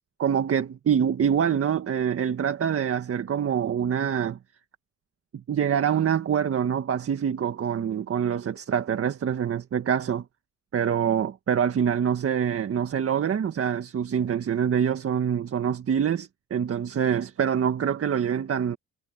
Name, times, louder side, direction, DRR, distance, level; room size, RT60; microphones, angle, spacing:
voice 1, 0.2-4.4 5.5-10.2 10.7-18.8, right 8 dB, 50° right, 1.7 m, -25 dB
cardioid pair, 90°, 30 cm